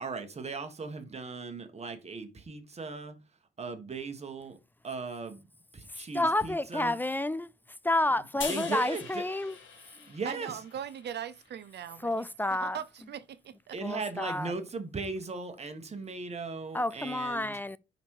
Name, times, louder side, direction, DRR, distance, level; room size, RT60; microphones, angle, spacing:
voice 1, 0.0-3.1 3.6-4.6 4.8-5.4 5.7-6.9 8.4-9.2 10.1-10.6 13.7-17.5, right 4 dB, 35° right, 1.5 m, -38 dB
voice 2, 5.9-7.5 7.8-9.6 10.0-10.1 12.0-12.8 13.8-14.5 16.7-17.8, left 1 dB, 10° left, 0.3 m, -30 dB
sound 1, 8.4-11.7, left 6 dB, 75° left, 1.7 m, -42 dB
voice 3, 10.2-12.3 12.6-13.8, right 9 dB, 60° right, 0.7 m, -40 dB
5.2 x 4.1 x 4.8 m
cardioid pair, 90°, 20 cm